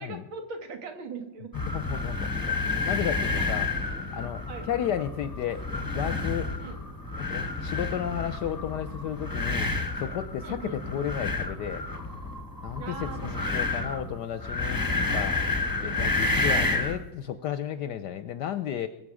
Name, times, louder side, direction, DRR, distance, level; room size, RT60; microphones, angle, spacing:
voice 1, 0.0-1.5 2.3-2.5 3.4-3.5 4.5-4.7 6.6-6.8 10.4-11.0 12.8-13.5 13.8-14.2 15.8-16.4, right 4 dB, 85° right, 6 dB, 2.4 m, -41 dB
sound 1, 1.5-17.0, left 3 dB, 15° left, 0.8 m, -30 dB
voice 2, 1.7-3.7 4.1-6.5 7.2-9.7 10.0-11.8 12.6-15.4 15.8-18.9, left 9 dB, 70° left, 12 dB, 1.1 m, -33 dB
22.0 x 7.8 x 4.9 m, 1.0 s
omnidirectional pair, 2.2 m